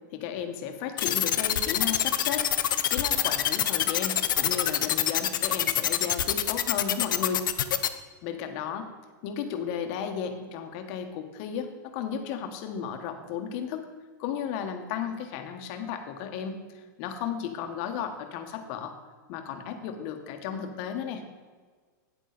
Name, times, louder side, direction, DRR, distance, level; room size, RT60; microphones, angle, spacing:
voice 1, 0.1-2.5 2.9-7.5 8.2-8.8 9.2-13.8 14.2-19.0 19.3-21.2, left 8 dB, 50° left, 6 dB, 1.2 m, -34 dB
sound 1, 1.0-7.9, left 11 dB, 85° left, 0.6 m, -25 dB
9.0 x 8.5 x 4.0 m, 1.5 s
supercardioid pair, 140°, 10 cm